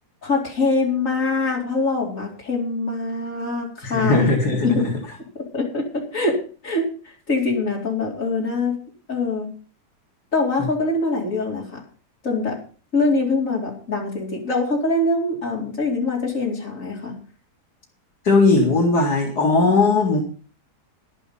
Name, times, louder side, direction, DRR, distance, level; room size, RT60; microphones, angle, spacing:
voice 1, 0.2-4.3 4.6-4.7 5.5-6.4 6.6-6.9 7.3-8.8 9.1-9.5 10.3-11.8 12.2-12.6 12.9-17.2, left 3 dB, 50° left, -2 dB, 4.6 m, -23 dB
voice 2, 3.8-4.9 10.6-10.7 18.2-20.2, left 3 dB, 80° left, -1 dB, 2.7 m, -18 dB
12.0 x 11.0 x 5.5 m, 0.40 s
omnidirectional pair, 1.7 m